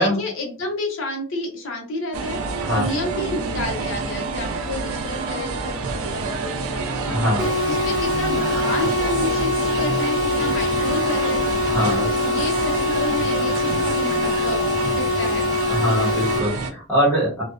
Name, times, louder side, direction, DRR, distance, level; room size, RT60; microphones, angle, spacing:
voice 1, 0.0-2.4 2.7-7.0 7.4-11.4 11.9-14.6 14.9-15.5, left 2 dB, 70° left, 2 dB, 0.7 m, -30 dB
sound 1, 2.1-16.7, right 4 dB, 85° right, 0.4 m, -28 dB
voice 2, 7.1-7.5 11.7-12.0 15.7-17.4, equal, 10° left, -7 dB, 1.3 m, -22 dB
sound 2, 7.4-16.4, left 2 dB, 15° right, 0.9 m, -23 dB
2.3 x 2.1 x 2.4 m, 0.38 s
head